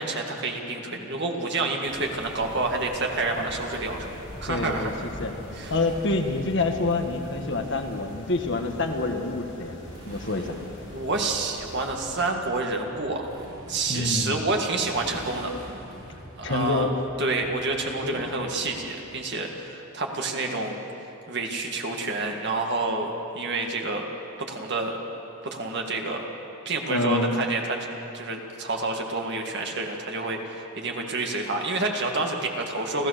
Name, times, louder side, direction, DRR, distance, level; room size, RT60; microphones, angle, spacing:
voice 1, 0.0-4.1 4.4-4.9 5.6-5.7 10.9-13.3 13.7-15.5 16.4-16.9 17.2-20.7 21.3-23.1 23.3-24.1 24.4-25.0 25.4-26.2 26.7-27.8 28.1-33.1, right 3 dB, 50° right, 2 dB, 2.1 m, -28 dB
sound 1, 1.8-12.3, equal, 90° left, 5.9 m, -44 dB
Motorcycle, 3.3-19.1, equal, 70° right, 4.6 m, -45 dB
voice 2, 4.5-5.3 5.7-9.7 10.0-10.6 13.9-14.4 16.4-16.9 18.0-18.3 26.9-27.4, left 2 dB, 55° left, 4 dB, 1.6 m, -27 dB
29.0 x 14.5 x 6.7 m, 2.9 s
head